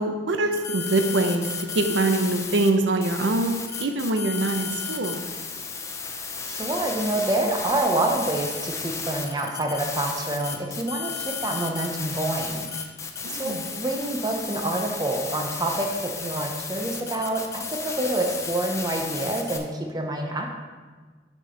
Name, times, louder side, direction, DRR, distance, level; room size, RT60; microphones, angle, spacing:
voice 1, 0.0-5.2 13.2-13.7, right 2 dB, 85° right, 6 dB, 0.6 m, -24 dB
sound 1, 0.5-2.7 3.0-19.6, left 5 dB, 15° left, 0.5 m, -33 dB
voice 2, 6.1-12.7 13.3-20.5, right 1 dB, 20° right, 2 dB, 0.7 m, -27 dB
8.1 x 6.1 x 3.8 m, 1.4 s
head